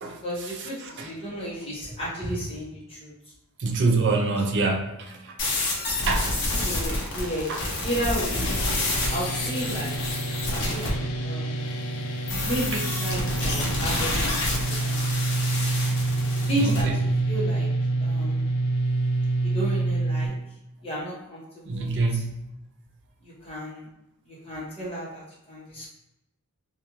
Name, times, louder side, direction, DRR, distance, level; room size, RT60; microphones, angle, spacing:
voice 1, 0.2-3.1 3.8-4.2 6.5-7.5 7.8-8.6 9.1-11.6 12.4-15.0 16.5-17.7 18.0-18.4 19.4-20.3 20.8-21.4 21.7-22.2 23.2-23.9 24.3-25.9, right 1 dB, 25° left, -7 dB, 1.0 m, -33 dB
voice 2, 3.6-5.3 6.1-6.3 7.5-7.6 16.6-16.9 21.7-22.4, right 3 dB, 55° right, 2 dB, 0.5 m, -25 dB
sound 1, 5.4-10.9 12.3-16.8, left 2 dB, 55° left, 0.7 m, -28 dB
sound 2, 8.3-20.3, right 2 dB, 90° left, 0.4 m, -27 dB
2.5 x 2.4 x 3.0 m, 0.90 s
head